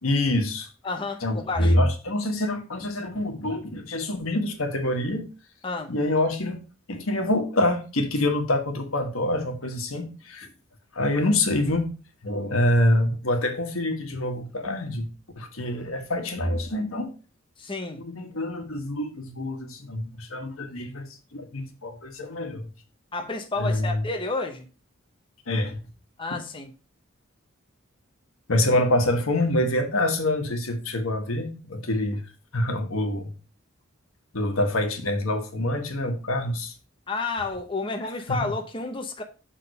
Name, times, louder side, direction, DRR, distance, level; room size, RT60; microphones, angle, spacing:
voice 1, 0.0-0.7 1.2-5.3 5.9-6.6 6.9-10.5 10.9-11.9 12.2-15.1 15.3-17.1 18.0-22.7 23.6-24.0 25.5-25.8 28.5-32.2 32.5-33.3 34.3-36.7 38.3-38.5, left 1 dB, 90° left, 1.4 m, -26 dB
voice 2, 0.8-1.7 5.6-5.9 17.6-18.0 23.1-24.7 26.2-26.7 37.1-39.2, left 3 dB, 25° left, 0.8 m, -30 dB
6.4 x 3.8 x 5.3 m
head